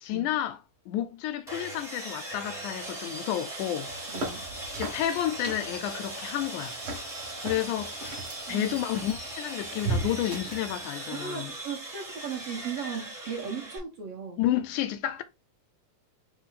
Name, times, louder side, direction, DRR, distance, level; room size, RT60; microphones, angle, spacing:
voice 1, 0.0-3.9 4.8-6.8 7.4-7.9 8.5-11.5 14.4-15.2, left 12 dB, 80° left, 1.9 m, -31 dB
Sawing, 1.5-13.8, right 1 dB, ahead, 0.8 m, -39 dB
sound 1, 3.9-10.8, right 2 dB, 45° right, 2.0 m, -38 dB
voice 2, 4.1-4.4 8.5-8.7 11.1-14.4, right 6 dB, 65° right, 1.6 m, -37 dB
5.0 x 2.6 x 3.9 m
omnidirectional pair, 3.8 m